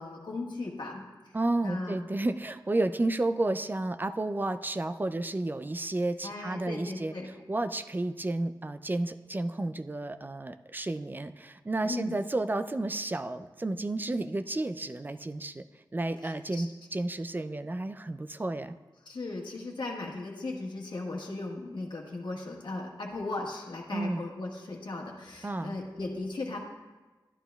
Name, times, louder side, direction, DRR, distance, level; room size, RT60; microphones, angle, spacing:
voice 1, 0.0-1.4 1.6-2.0 6.2-7.3 11.8-12.2 16.2-16.6 19.0-26.6, left 2 dB, 75° left, -2 dB, 1.4 m, -37 dB
voice 2, 1.3-7.1 7.5-15.6 15.9-18.8 23.9-24.2 25.4-25.8, right 2 dB, 25° right, 11 dB, 0.3 m, -31 dB
12.0 x 11.0 x 2.3 m, 1.3 s
wide cardioid pair, 105°, 8 cm